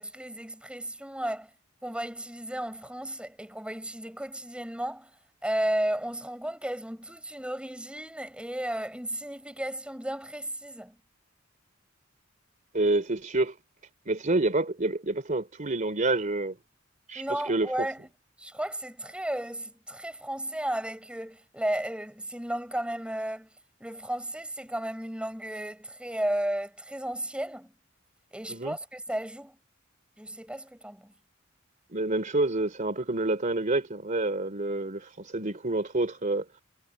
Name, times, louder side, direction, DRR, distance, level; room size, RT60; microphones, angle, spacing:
voice 1, 0.0-1.5 1.8-5.1 5.4-11.0 17.1-18.0 18.4-23.5 23.8-27.7 28.3-29.6 30.2-31.1, right 1 dB, 5° right, 5.0 m, -34 dB
voice 2, 12.7-13.5 14.1-16.6 17.1-17.9 28.5-28.8 31.9-36.4, right 2 dB, 40° right, 3.3 m, -28 dB
head